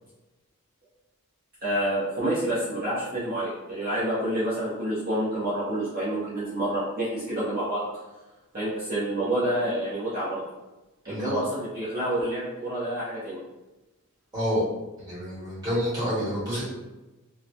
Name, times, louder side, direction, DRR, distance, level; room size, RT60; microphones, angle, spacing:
voice 1, 1.6-7.8 8.5-10.4 11.1-13.4, right 1 dB, 40° right, -11 dB, 0.7 m, -28 dB
voice 2, 11.0-11.4 14.3-14.6 15.0-16.6, equal, 20° right, -11 dB, 1.4 m, -28 dB
3.0 x 2.1 x 2.5 m, 1.1 s
head